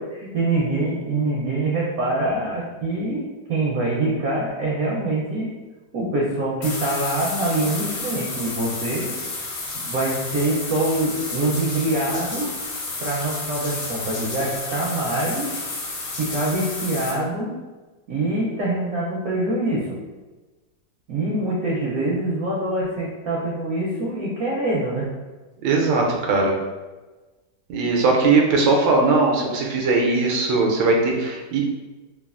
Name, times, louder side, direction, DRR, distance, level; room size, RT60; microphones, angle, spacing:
voice 1, 0.2-3.2 3.5-5.5 5.9-9.1 9.7-12.5 13.0-15.6 16.2-17.5 18.1-19.8 21.1-25.1, right 2 dB, 70° right, -5 dB, 0.9 m, -24 dB
sound 1, 6.6-17.1, left 3 dB, 70° left, 1.1 m, -31 dB
voice 2, 25.6-26.5 27.7-31.6, right 3 dB, 90° right, 0 dB, 1.3 m, -19 dB
3.1 x 2.3 x 2.4 m, 1.2 s
omnidirectional pair, 1.9 m